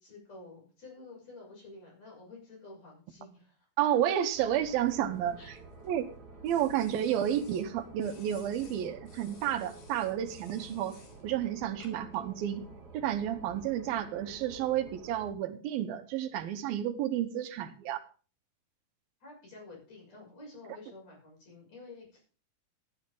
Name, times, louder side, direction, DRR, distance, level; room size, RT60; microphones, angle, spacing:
voice 1, 0.0-3.7 5.4-5.5 19.2-22.2, left 3 dB, 45° left, -1 dB, 7.6 m, -50 dB
voice 2, 3.8-5.4 5.9-6.1 6.4-11.0 11.2-12.6 12.9-18.0, right 10 dB, 80° right, 9 dB, 2.8 m, -31 dB
sound 1, 4.3-15.3, right 3 dB, 30° right, 2.6 m, -51 dB
sound 2, 4.9-5.9 6.5-7.7 8.0-11.2 11.8-12.2, left 5 dB, 85° left, 4.3 m, -58 dB
14.0 x 11.5 x 3.7 m, 0.38 s
omnidirectional pair, 4.2 m